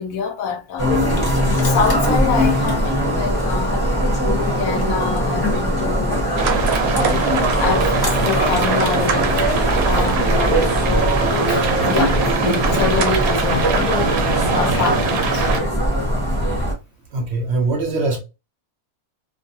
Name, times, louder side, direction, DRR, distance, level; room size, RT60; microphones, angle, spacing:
voice 1, 0.0-3.9 4.2-6.3 6.9-7.2 7.6-9.4 9.8-10.6 11.5-14.0 14.4-15.5, left 6 dB, 85° left, 1.0 m, -26 dB
sound 1, 0.8-16.7, equal, 20° left, 0.7 m, -20 dB
sound 2, 6.4-15.6, right 4 dB, 90° right, 1.1 m, -22 dB
sound 3, 7.9-15.5, right 1 dB, 5° left, 1.1 m, -32 dB
voice 2, 17.1-18.2, right 3 dB, 60° right, 0.8 m, -22 dB
2.5 x 2.4 x 2.7 m
omnidirectional pair, 1.5 m